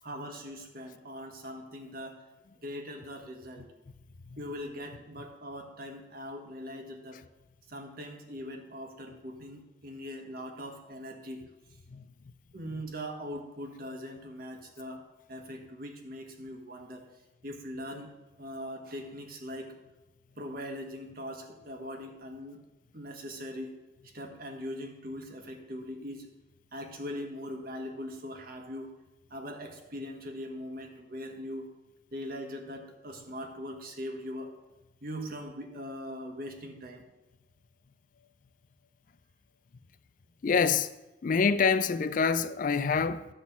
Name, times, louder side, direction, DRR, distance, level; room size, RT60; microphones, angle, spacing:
voice 1, 0.0-2.2 2.6-3.7 4.4-7.2 7.7-11.4 12.5-15.0 15.3-17.0 17.4-18.1 18.4-19.8 20.4-22.6 22.9-23.7 24.1-26.3 26.7-28.9 29.3-31.7 32.1-34.5 35.0-37.0, equal, 50° right, 1.4 m, -41 dB
voice 2, 40.4-40.9 41.2-43.3, left 5 dB, 45° left, 0.4 m, -26 dB
12.5 x 4.2 x 7.2 m
head